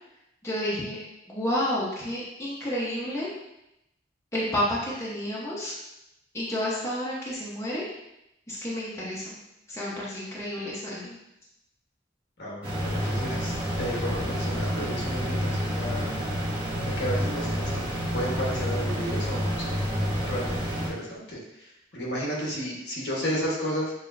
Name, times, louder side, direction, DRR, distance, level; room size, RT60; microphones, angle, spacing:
voice 1, 0.4-1.0 1.3-3.3 4.3-5.7 6.3-7.8 8.5-9.4 9.7-11.2, left 1 dB, 15° left, -7 dB, 1.0 m, -30 dB
voice 2, 12.4-16.0 17.0-17.8 18.1-19.9 20.3-21.4 21.9-23.9, equal, 60° left, -3 dB, 1.2 m, -32 dB
sound 1, 12.6-20.9, equal, 30° right, 1.1 m, -29 dB
7.2 x 2.9 x 2.6 m, 0.86 s
head